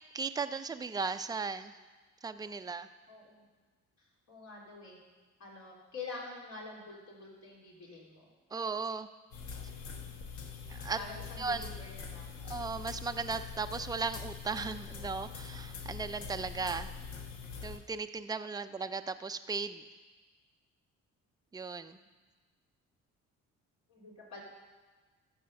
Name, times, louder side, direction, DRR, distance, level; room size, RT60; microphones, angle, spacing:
voice 1, 0.1-1.7 2.2-2.9 8.5-9.1 10.7-11.0 11.4-11.7 12.5-16.9 17.6-19.8 21.5-22.0, right 4 dB, 15° right, 9 dB, 0.4 m, -36 dB
voice 2, 3.1-3.5 4.0-5.0 5.4-8.3 11.0-12.3 22.0-22.1 23.9-24.4, left 3 dB, 65° left, -3 dB, 3.5 m, -47 dB
sound 1, 9.3-17.8, left 6 dB, 85° left, 1.3 m, -44 dB
13.5 x 5.0 x 6.5 m, 1.3 s
cardioid pair, 90°, 30 cm